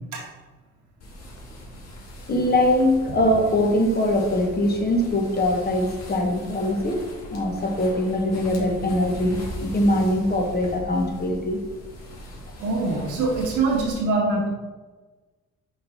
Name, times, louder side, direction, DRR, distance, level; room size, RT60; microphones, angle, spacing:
sound 1, 1.0-13.9, equal, 60° left, 1.8 m, -40 dB
voice 1, 2.3-7.0 7.3-11.6, left 1 dB, 30° left, 2 dB, 1.3 m, -22 dB
voice 2, 12.6-14.5, right 3 dB, 90° right, -3 dB, 1.7 m, -23 dB
5.6 x 4.0 x 5.1 m, 1.2 s
cardioid pair, 90°, 30 cm